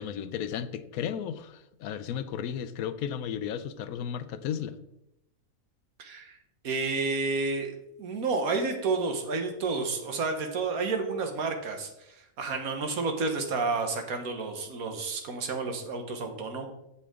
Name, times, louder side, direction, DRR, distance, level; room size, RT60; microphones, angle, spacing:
voice 1, 0.0-4.8, left 8 dB, 80° left, 13 dB, 1.1 m, -34 dB
voice 2, 6.0-6.4 6.6-7.7 8.0-16.7, right 4 dB, 80° right, 5 dB, 1.7 m, -30 dB
8.4 x 7.6 x 3.7 m, 0.84 s
omnidirectional pair, 1.5 m